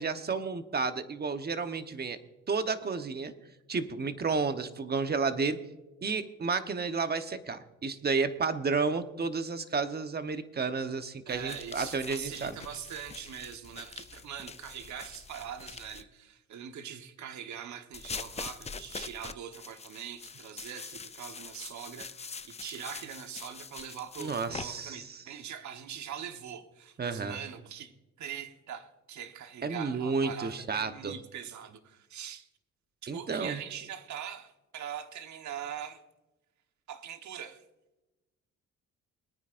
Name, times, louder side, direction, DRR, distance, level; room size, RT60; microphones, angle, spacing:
voice 1, 0.0-2.2 2.5-3.3 3.7-5.6 6.0-12.6 24.2-25.2 27.0-27.4 29.6-31.2 33.1-33.6, right 4 dB, 35° right, 1.1 m, -31 dB
sound 1, 11.3-16.0 17.9-24.7, left 5 dB, 20° left, 0.5 m, -44 dB
voice 2, 11.3-32.5 33.0-36.0 36.9-37.6, right 9 dB, 70° right, 1.3 m, -42 dB
22.5 x 9.6 x 2.6 m
cardioid pair, 90°, 30 cm